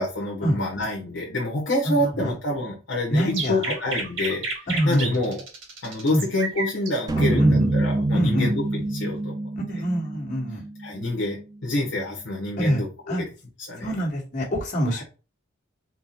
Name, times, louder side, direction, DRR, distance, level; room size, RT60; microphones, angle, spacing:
voice 1, 0.0-4.4 4.9-5.4 5.8-9.4 10.8-13.1 13.7-13.9 14.9-15.0, left 1 dB, 65° left, 1.0 m, -27 dB
voice 2, 1.8-2.4 3.1-3.7 4.7-5.2 6.1-6.2 7.3-7.7 8.1-8.5 9.5-10.6 12.6-13.2 13.8-15.0, equal, 40° left, 1.7 m, -25 dB
sound 1, 3.3-6.9, right 3 dB, 75° right, 1.6 m, -30 dB
sound 2, 7.1-11.4, right 2 dB, 20° right, 0.3 m, -26 dB
4.4 x 2.1 x 4.1 m
head